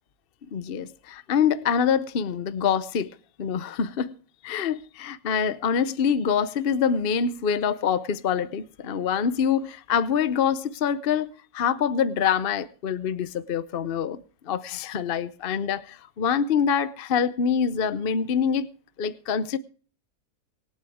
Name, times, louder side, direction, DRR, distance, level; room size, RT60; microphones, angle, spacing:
voice 1, 0.5-3.1 3.4-4.1 4.4-18.7 19.0-19.6, left 7 dB, 45° left, 0.8 m, -25 dB
25.5 x 8.6 x 3.6 m
omnidirectional pair, 1.7 m